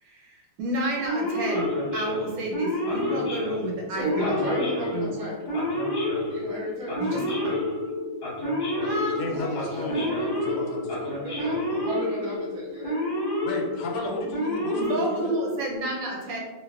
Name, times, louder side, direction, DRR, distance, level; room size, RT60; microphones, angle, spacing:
voice 1, 0.0-4.3 4.9-5.5 7.0-7.7 8.8-10.2 14.8-16.4, right 1 dB, 80° right, -2 dB, 1.4 m, -31 dB
Male speech man speaking / Siren, 1.0-15.8, left 1 dB, 45° left, 0.8 m, -29 dB
voice 2, 3.9-5.4 6.3-7.0 9.8-10.5 10.9-13.1 14.0-14.1, right 1 dB, 60° right, -4 dB, 1.1 m, -34 dB
voice 3, 8.8-11.2 13.4-15.3, left 2 dB, 90° left, 1 dB, 1.3 m, -34 dB
2.9 x 2.4 x 2.3 m, 1.2 s
omnidirectional pair, 2.0 m